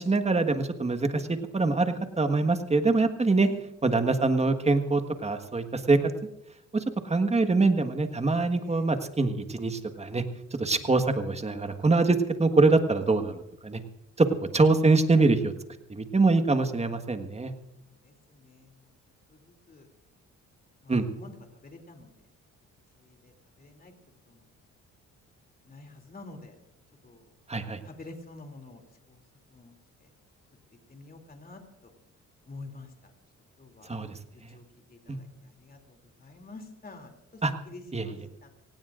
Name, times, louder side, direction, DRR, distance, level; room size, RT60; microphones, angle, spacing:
voice 1, 0.0-3.5 3.8-6.1 6.7-10.2 10.5-13.8 14.2-14.3 14.5-15.5 15.9-17.5 20.9-21.1 27.5-27.8 33.9-34.1 35.1-35.2 37.4-37.5 37.9-38.2, right 3 dB, 20° right, 7 dB, 1.5 m, -24 dB
voice 2, 18.0-18.7 19.3-19.4 19.7-19.9 20.8-21.3 21.6-22.1 23.0-23.3 23.6-23.9 24.3-24.4 25.7-26.5 27.0-27.2 27.8-28.8 29.1-29.2 29.5-29.7 30.0-30.1 30.9-31.9 32.5-32.9 33.6-34.6 34.9-37.4 37.7-38.5, left 3 dB, 30° left, 4 dB, 2.9 m, -48 dB
24.5 x 18.0 x 2.6 m, 0.87 s
cardioid pair, 90°, 30 cm